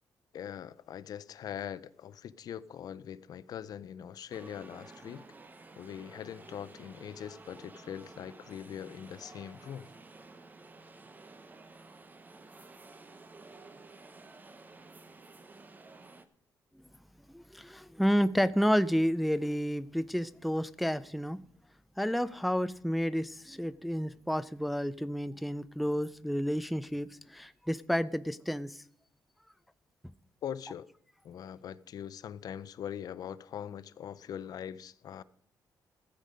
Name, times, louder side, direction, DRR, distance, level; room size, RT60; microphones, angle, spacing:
voice 1, 0.3-5.2 5.8-9.9 30.4-30.9 31.2-35.2, left 9 dB, 60° left, 0.5 m, -42 dB
sound 1, 4.3-16.3, right 3 dB, 25° right, 0.9 m, -52 dB
voice 2, 17.3-21.4 22.0-28.8, equal, ahead, 0.3 m, -30 dB
14.0 x 8.2 x 5.2 m
cardioid pair, 135°, 7 cm